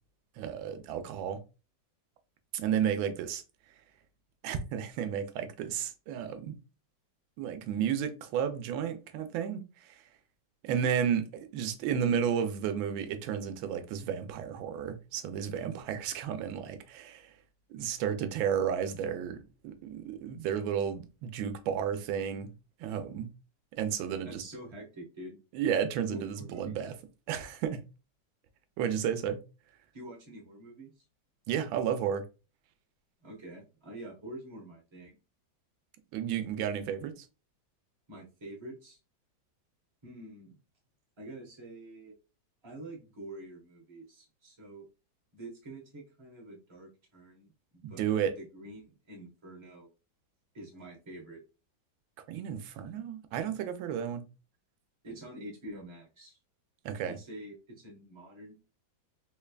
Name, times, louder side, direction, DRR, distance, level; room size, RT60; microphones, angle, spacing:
voice 1, 0.4-1.4 2.5-3.4 4.4-6.5 7.4-10.0 10.6-17.3 17.7-22.5 22.8-23.3 23.8-24.4 25.5-26.9 27.3-27.8 28.8-29.4 31.5-32.2 36.1-37.1 47.8-48.3 52.3-54.2 56.8-57.2, right 8 dB, 90° right, 1.4 m, -32 dB
voice 2, 24.2-25.4 26.1-26.8 29.9-30.9 33.2-35.1 38.1-39.0 40.0-40.5 41.2-42.1 42.6-44.9 45.3-48.1 48.4-49.9 50.5-51.4 55.0-56.4 57.0-58.6, right 1 dB, 20° right, 1.0 m, -46 dB
3.8 x 3.2 x 2.3 m
omnidirectional pair, 2.1 m